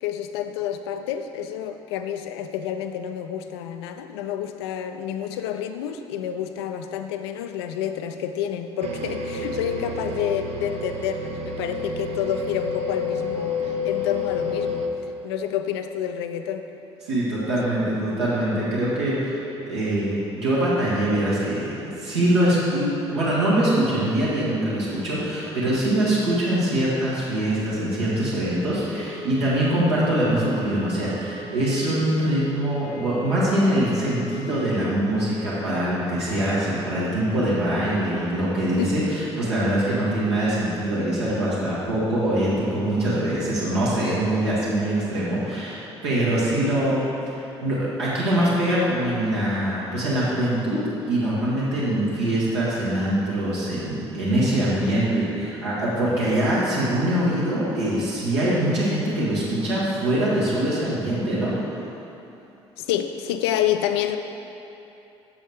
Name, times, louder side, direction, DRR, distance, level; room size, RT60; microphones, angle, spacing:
voice 1, 0.0-14.8 15.2-16.6 38.8-39.1 62.8-64.2, left 10 dB, 70° left, 8 dB, 0.4 m, -29 dB
sound 1, 8.8-14.9, left 4 dB, 50° right, 0.6 m, -29 dB
voice 2, 17.0-61.6, right 1 dB, 80° right, -8 dB, 1.7 m, -23 dB
sound 2, 28.8-35.8, right 1 dB, 50° left, 0.9 m, -39 dB
7.1 x 4.8 x 4.7 m, 2.9 s
figure-of-eight pair, 50°, 14 cm